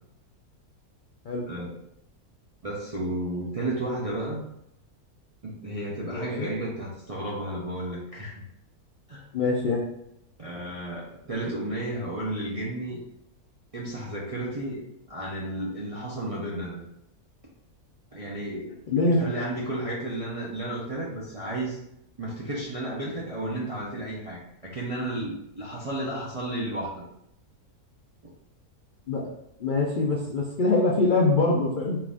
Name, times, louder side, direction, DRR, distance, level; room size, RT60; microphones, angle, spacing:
voice 1, 1.5-1.8 2.6-4.5 5.4-8.4 9.1-9.3 10.4-13.0 13.7-16.8 18.1-18.7 19.1-21.8 22.2-27.0, right 1 dB, 50° right, -6 dB, 0.4 m, -33 dB
voice 2, 6.1-6.5 9.3-9.8 18.9-19.2 29.1-29.3 29.6-32.0, left 3 dB, 70° left, -1 dB, 0.4 m, -24 dB
4.5 x 2.5 x 3.5 m, 0.79 s
omnidirectional pair, 1.6 m